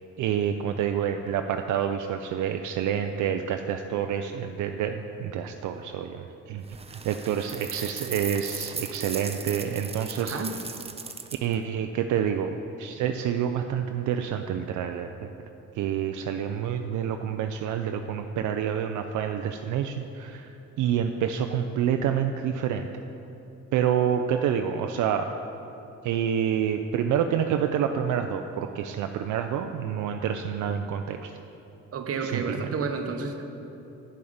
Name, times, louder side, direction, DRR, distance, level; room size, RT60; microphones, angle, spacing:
voice 1, 0.2-6.6 6.9-10.4 11.4-12.5 12.8-15.3 15.8-20.5 20.8-22.9 23.7-25.3 26.0-31.3 32.2-32.7, right 8 dB, 80° right, 6 dB, 0.5 m, -28 dB
sound 1, 6.7-11.5, right 4 dB, 20° right, 0.6 m, -37 dB
voice 2, 10.2-10.5 31.9-33.4, right 5 dB, 50° right, 6 dB, 0.9 m, -30 dB
8.8 x 7.0 x 5.0 m, 2.9 s
cardioid pair, 90°, 30 cm